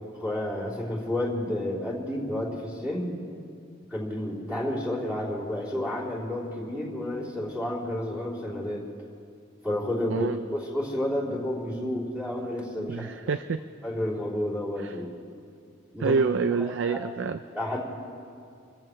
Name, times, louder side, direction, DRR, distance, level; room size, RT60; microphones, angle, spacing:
voice 1, 0.2-3.1 3.9-8.9 9.6-13.1 13.8-15.1 15.9-16.2 16.6-17.0 17.5-17.8, left 1 dB, 10° right, -6 dB, 3.5 m, -30 dB
voice 2, 12.9-13.6 14.8-14.9 16.0-17.4, right 5 dB, 60° right, 11 dB, 0.4 m, -27 dB
27.0 x 14.5 x 3.3 m, 2.4 s
head